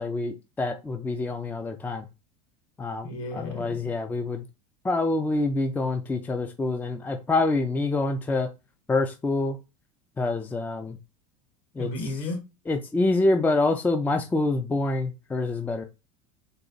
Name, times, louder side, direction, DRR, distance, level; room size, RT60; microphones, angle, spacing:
voice 1, 0.0-2.0 2.8-3.1 3.3-4.4 4.8-8.5 8.9-9.6 10.2-11.0 11.7-11.9 12.7-15.8, left 2 dB, 10° left, 0.4 m, -26 dB
voice 2, 3.0-3.8 11.8-12.4, left 2 dB, 55° left, 2.0 m, -33 dB
4.0 x 2.9 x 4.0 m
supercardioid pair, 125°, 17 cm